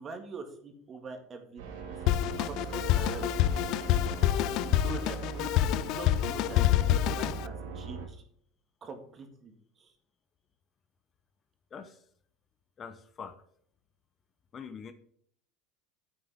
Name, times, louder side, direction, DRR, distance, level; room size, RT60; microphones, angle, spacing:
voice 1, 0.0-3.3 4.4-5.5 5.9-6.6 7.0-8.2 8.8-9.5 9.8-9.9, right 4 dB, 35° right, 5 dB, 1.9 m, -44 dB
sound 1, 1.6-8.1, right 5 dB, 80° right, 2.2 m, -40 dB
Drum kit, 2.1-7.5, left 12 dB, 60° left, 0.4 m, -27 dB
voice 2, 11.7-12.0 12.8-13.4 14.5-14.9, left 6 dB, 30° left, 10 dB, 0.9 m, -44 dB
10.0 x 8.8 x 3.6 m, 0.63 s
supercardioid pair, 115°, 0 cm